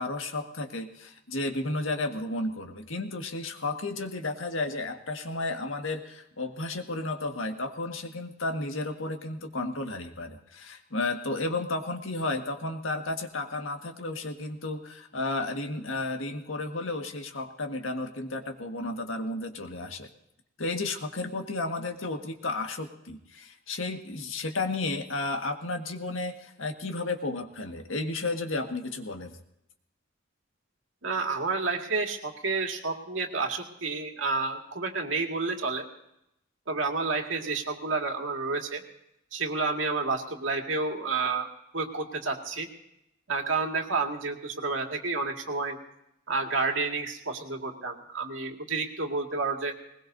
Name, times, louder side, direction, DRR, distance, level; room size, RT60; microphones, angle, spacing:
voice 1, 0.0-20.1 20.6-29.4, left 2 dB, 85° left, 4 dB, 1.7 m, -33 dB
voice 2, 31.0-35.8 36.7-38.8 39.3-41.5 41.7-42.7 43.3-45.8 46.3-49.7, right 3 dB, 75° right, 2 dB, 2.1 m, -30 dB
20.5 x 20.0 x 2.7 m, 0.82 s
head